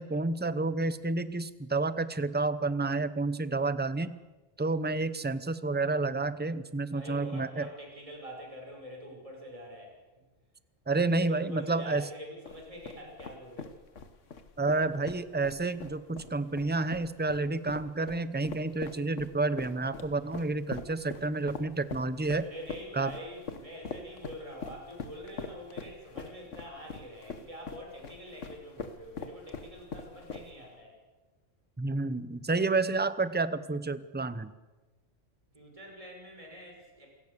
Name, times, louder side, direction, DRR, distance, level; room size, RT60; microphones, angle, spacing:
voice 1, 0.0-4.2 4.6-7.7 10.9-12.1 14.6-22.5 23.0-23.1 31.8-34.5, right 3 dB, 10° right, 13 dB, 0.7 m, -30 dB
voice 2, 6.9-9.9 11.2-13.8 22.4-31.0 35.5-37.1, equal, 25° right, 0 dB, 6.1 m, -45 dB
sound 1, 12.5-30.8, left 5 dB, 75° left, 1.7 m, -43 dB
28.0 x 17.5 x 6.8 m, 1.2 s
omnidirectional pair, 1.3 m